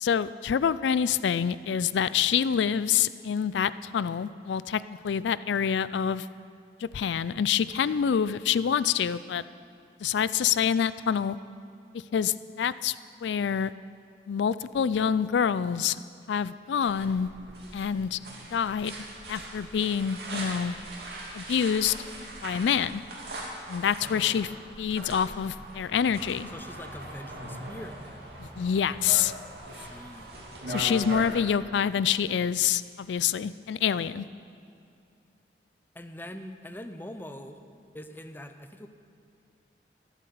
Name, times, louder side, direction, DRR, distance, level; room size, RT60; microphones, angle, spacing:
voice 1, 0.0-6.3 6.8-9.4 10.0-11.4 11.9-13.0 13.2-13.7 14.3-16.0 16.3-17.3 17.7-18.2 18.5-18.9 19.3-20.8 21.3-21.9 22.4-23.0 23.7-24.5 24.8-26.5 28.4-29.3 30.7-34.2, left 8 dB, 85° left, 16 dB, 0.4 m, -26 dB
sound 1, 16.8-31.3, right 1 dB, 65° right, 2.8 m, -41 dB
voice 2, 24.0-24.5 26.5-28.2 29.7-30.3 35.9-37.6 37.9-38.9, left 1 dB, 10° left, 7 dB, 0.6 m, -43 dB
14.0 x 11.5 x 6.9 m, 2.5 s
head